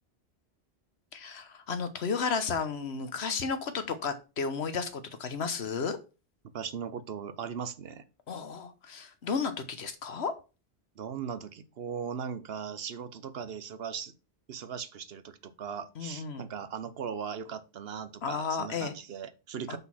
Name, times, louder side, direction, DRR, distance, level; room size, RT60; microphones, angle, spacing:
voice 1, 1.1-6.0 8.3-10.3 16.0-16.5 18.2-18.9 19.7-19.8, left 5 dB, 90° left, 10 dB, 1.3 m, -33 dB
voice 2, 6.5-8.1 11.0-14.1 14.5-19.8, right 7 dB, 70° right, 13 dB, 1.0 m, -38 dB
6.2 x 5.3 x 5.7 m, 0.32 s
omnidirectional pair, 1.1 m